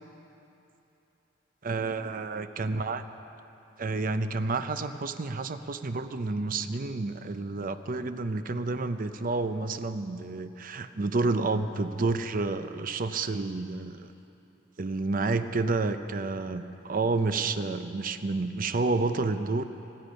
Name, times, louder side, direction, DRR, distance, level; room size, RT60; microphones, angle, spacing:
voice 1, 1.6-3.0 3.8-14.1 14.8-19.7, right 3 dB, 45° right, 10 dB, 0.6 m, -30 dB
25.5 x 10.0 x 5.3 m, 2.9 s
head